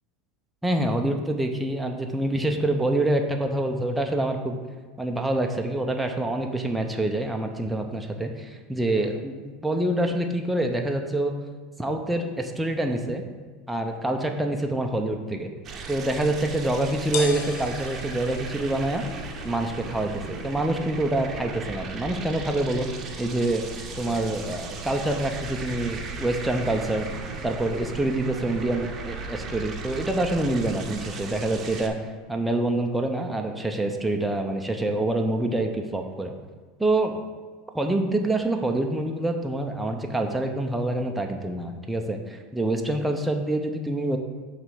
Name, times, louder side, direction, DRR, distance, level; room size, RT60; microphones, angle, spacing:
voice 1, 0.6-4.6 5.0-11.3 11.8-13.2 13.7-15.5 15.9-19.0 19.4-22.9 23.2-23.6 24.0-27.1 27.4-32.0 32.3-36.3 36.8-37.2 37.7-44.2, right 1 dB, 5° right, 3 dB, 0.6 m, -26 dB
sound 1, 15.6-31.9, right 4 dB, 35° right, 0.8 m, -36 dB
sound 2, 16.0-26.1, left 6 dB, 60° left, 0.7 m, -42 dB
5.7 x 3.3 x 5.5 m, 1.4 s
hypercardioid pair, 100°, 0 cm